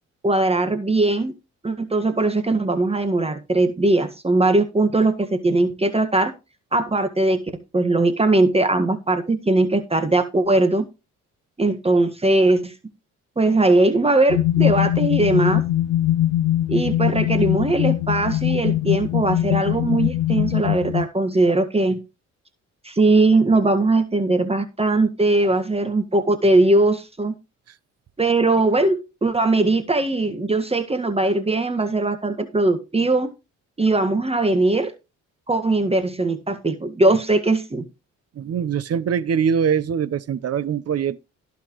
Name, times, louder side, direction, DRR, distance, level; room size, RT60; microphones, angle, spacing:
voice 1, 0.2-1.3 1.6-6.3 6.7-7.4 7.7-10.9 11.6-12.7 13.4-15.6 16.7-22.0 22.8-27.3 28.2-33.3 33.8-34.9 35.5-37.8, right 2 dB, 20° right, 1.7 m, -20 dB
sound 1, 14.3-21.1, left 13 dB, 90° left, 0.6 m, -21 dB
voice 2, 38.4-41.2, right 7 dB, 55° right, 1.0 m, -23 dB
17.0 x 5.9 x 3.1 m
cardioid pair, 90°, 30 cm